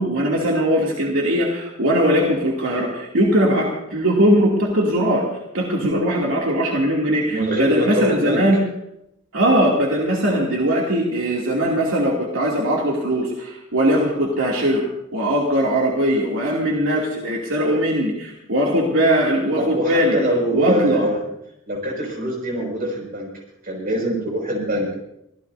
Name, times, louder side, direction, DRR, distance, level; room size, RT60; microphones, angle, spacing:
voice 1, 0.0-5.3 5.5-8.6 9.3-14.8 15.1-20.2 20.5-21.1, equal, 70° right, -3 dB, 2.7 m, -20 dB
voice 2, 7.3-8.4 19.5-21.2 21.7-23.3 23.6-24.9, right 1 dB, 45° right, 0 dB, 6.1 m, -24 dB
25.5 x 17.0 x 2.7 m, 0.80 s
head